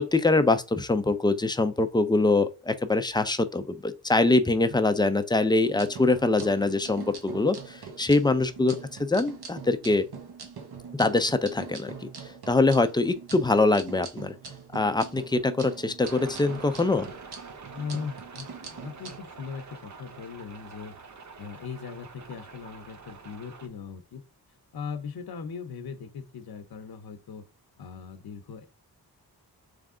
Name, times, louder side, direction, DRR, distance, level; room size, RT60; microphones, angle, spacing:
voice 1, 0.0-10.1 11.0-14.3 14.7-17.1, left 2 dB, 10° left, 0.5 m, -24 dB
sound 1, 5.6-19.2, right 5 dB, 65° right, 1.1 m, -43 dB
sound 2, 16.0-23.7, right 4 dB, 45° right, 0.8 m, -46 dB
voice 2, 17.7-20.9 21.4-24.2 24.7-27.4 27.8-28.7, left 6 dB, 65° left, 0.8 m, -39 dB
3.6 x 3.4 x 3.7 m
wide cardioid pair, 90°, 41 cm